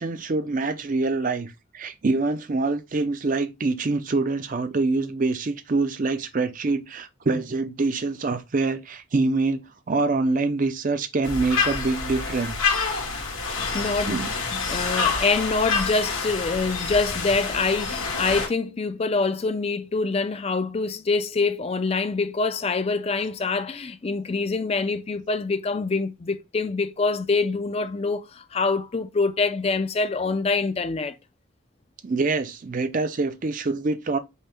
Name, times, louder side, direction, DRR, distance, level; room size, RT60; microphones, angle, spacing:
voice 1, 0.0-12.7 14.1-14.3 32.0-34.2, right 3 dB, 40° right, 0.5 m, -25 dB
sound 1, 11.2-18.5, left 4 dB, 85° left, 1.4 m, -27 dB
voice 2, 13.5-14.2 14.5-31.1, left 4 dB, 30° left, 0.4 m, -25 dB
5.5 x 2.1 x 4.4 m
head